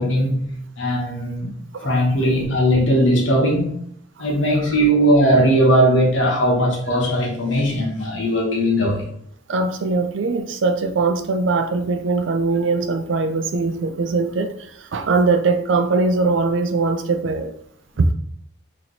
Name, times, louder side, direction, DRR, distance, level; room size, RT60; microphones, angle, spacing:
voice 1, 0.0-1.5 1.8-3.7 4.2-9.1, equal, 70° left, 1.0 m, -18 dB
voice 2, 9.5-14.5 14.9-17.5 18.0-18.1, right 3 dB, 70° right, 0.4 m, -21 dB
3.0 x 2.8 x 4.1 m
head